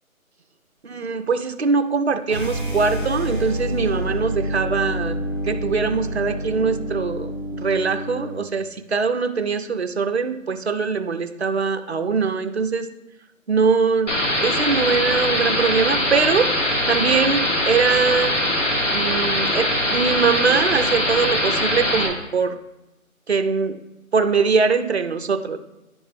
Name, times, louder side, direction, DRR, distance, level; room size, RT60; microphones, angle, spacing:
voice 1, 0.8-12.9 13.5-16.5 16.9-18.3 18.9-22.6 23.3-23.8 24.1-25.6, right 5 dB, 50° right, 8 dB, 0.4 m, -22 dB
sound 1, 2.3-8.4, equal, 35° left, 1.0 m, -28 dB
sound 2, 14.1-22.1, left 1 dB, 60° left, 1.5 m, -22 dB
10.5 x 3.5 x 3.2 m, 0.99 s
figure-of-eight pair, 170°, 42 cm